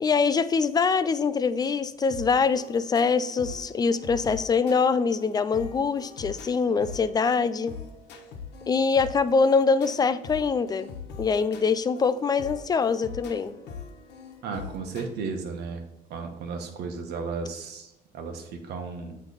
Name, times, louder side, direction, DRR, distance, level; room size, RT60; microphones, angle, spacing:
voice 1, 0.0-7.8 8.7-10.9 11.2-13.6, left 5 dB, 25° left, 13 dB, 0.4 m, -24 dB
New Composition, 2.1-15.0, left 6 dB, 85° left, 1.0 m, -42 dB
voice 2, 14.4-15.8 16.1-19.2, right 4 dB, 75° right, 4 dB, 1.1 m, -34 dB
8.0 x 3.2 x 3.9 m, 0.86 s
cardioid pair, 110°, 17 cm